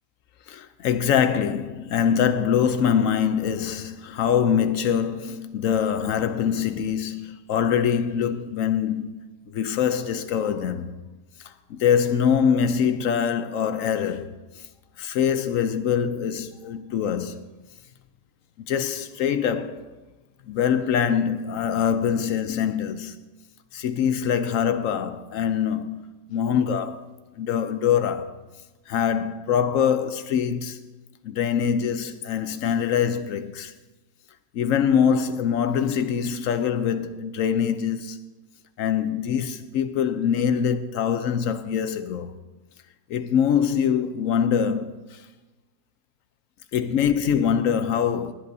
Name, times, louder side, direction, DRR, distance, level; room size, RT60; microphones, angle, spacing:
voice 1, 0.5-9.2 9.5-10.9 11.4-14.7 15.0-17.5 18.6-19.9 20.5-23.2 23.7-26.0 26.3-27.1 27.4-28.4 28.9-30.8 31.2-33.7 34.5-38.2 38.8-42.3 43.1-45.2 46.7-48.3, left 8 dB, 70° left, 0.8 m, -24 dB
18.5 x 11.0 x 2.7 m
omnidirectional pair, 1.8 m